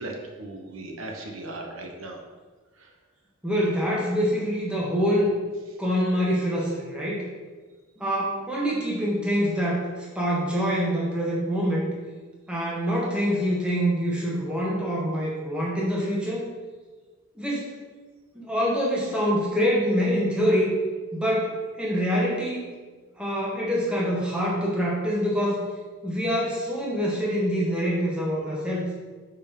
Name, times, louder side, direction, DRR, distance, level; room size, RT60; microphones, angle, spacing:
voice 1, 0.0-2.2 2.8-2.9, right 2 dB, 80° right, 1 dB, 1.0 m, -37 dB
voice 2, 3.4-5.3 5.8-7.2 8.0-9.8 10.1-11.9 12.5-16.5 17.3-17.7 18.3-20.7 21.1-22.6 23.2-25.6 26.0-28.9, equal, 5° right, -5 dB, 1.3 m, -25 dB
5.4 x 4.4 x 5.2 m, 1.4 s
head